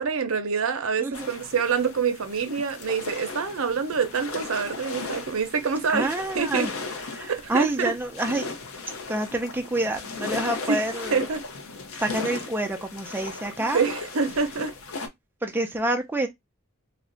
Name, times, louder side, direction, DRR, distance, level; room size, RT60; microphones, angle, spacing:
voice 1, 0.0-6.7 7.3-7.9 10.7-10.8 11.1-11.4 13.7-14.7, right 5 dB, 80° right, 0.6 m, -26 dB
voice 2, 1.0-1.3 5.9-6.7 7.1-8.5 9.1-11.2 12.0-13.8 15.4-16.3, right 1 dB, 10° right, 0.4 m, -27 dB
sound 1, 1.1-15.1, left 4 dB, 80° left, 0.6 m, -37 dB
2.5 x 2.1 x 3.7 m
head